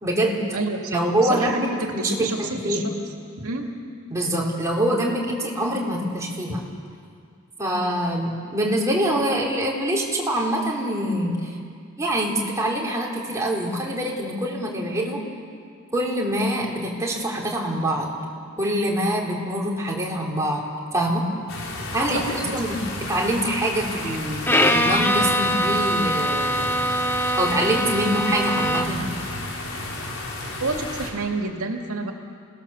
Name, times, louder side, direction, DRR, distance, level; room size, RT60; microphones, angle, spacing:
voice 1, 0.0-0.4 0.9-1.7 1.9-2.8 4.1-6.6 7.6-11.6 12.0-15.2 15.9-18.1 18.6-20.6 20.9-21.2 21.9-24.4 24.7-27.0 27.4-29.1, right 1 dB, 15° right, -3 dB, 3.7 m, -25 dB
voice 2, 0.5-1.6 2.0-2.9 3.4-3.7 22.1-22.5 24.0-24.2 30.6-32.1, right 3 dB, 85° right, 2 dB, 2.3 m, -29 dB
sound 1, 21.5-31.1, left 2 dB, 70° left, 4.3 m, -33 dB
Bowed string instrument, 24.5-29.1, equal, 10° left, 1.1 m, -23 dB
29.5 x 18.5 x 7.2 m, 2.2 s
head